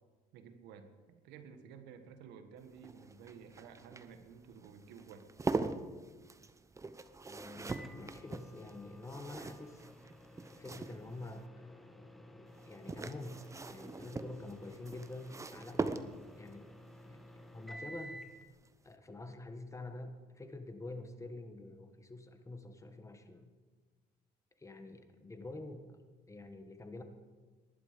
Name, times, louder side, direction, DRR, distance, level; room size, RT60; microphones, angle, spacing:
voice 1, 0.3-5.3, right 6 dB, 90° right, 8 dB, 1.5 m, -53 dB
sound 1, 2.6-11.4 12.5-16.5 18.1-18.4 18.7-18.8, right 3 dB, 20° right, 0.8 m, -42 dB
voice 2, 7.3-9.8 10.5-16.7 17.0-18.2 18.8-23.5 24.6-25.8 26.3-27.0, left 2 dB, 20° left, 7 dB, 1.6 m, -47 dB
Microwave oven, 7.7-18.5, equal, ahead, 1.2 m, -54 dB
19.0 x 11.5 x 5.2 m, 1.4 s
cardioid pair, 110°, 17 cm